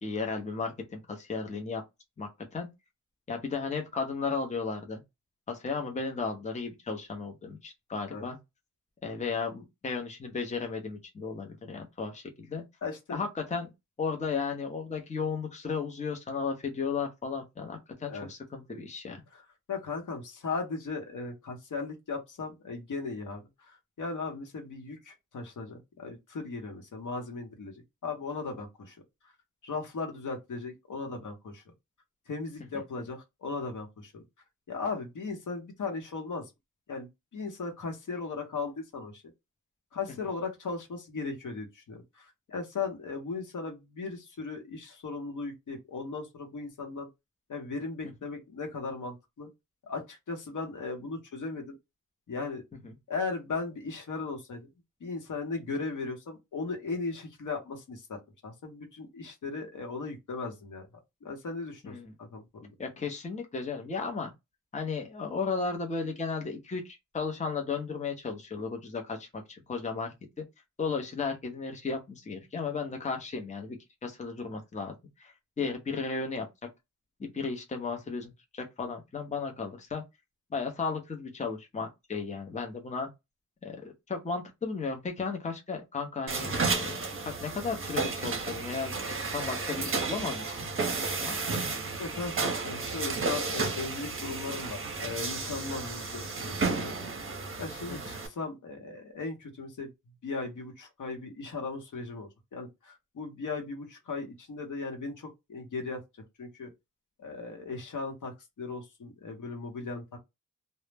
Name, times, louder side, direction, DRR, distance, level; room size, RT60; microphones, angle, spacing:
voice 1, 0.0-1.8 2.2-2.7 3.3-5.0 5.5-8.4 9.0-12.6 13.1-13.7 14.0-19.2 48.0-48.1 52.8-52.9 61.8-62.1 62.8-64.3 64.7-70.4 70.8-76.5 77.2-80.0 80.5-83.1 83.6-87.0 87.2-88.9 89.3-90.6 91.2-91.4 97.9-98.0, left 4 dB, 25° left, 0.6 m, -34 dB
voice 2, 12.8-13.2 18.1-18.3 19.1-19.4 19.7-27.7 28.0-29.0 29.6-31.6 32.3-34.2 34.7-36.5 36.9-39.2 39.9-47.1 47.5-49.5 49.8-51.8 52.3-52.6 53.1-54.7 55.0-60.9 61.2-62.7 92.0-97.2 97.6-99.9 100.2-106.0 106.4-106.7 107.2-110.2, left 4 dB, 70° left, 0.8 m, -37 dB
sound 1, 86.3-98.3, right 4 dB, 40° right, 0.6 m, -32 dB
2.0 x 2.0 x 3.2 m
wide cardioid pair, 125°, 31 cm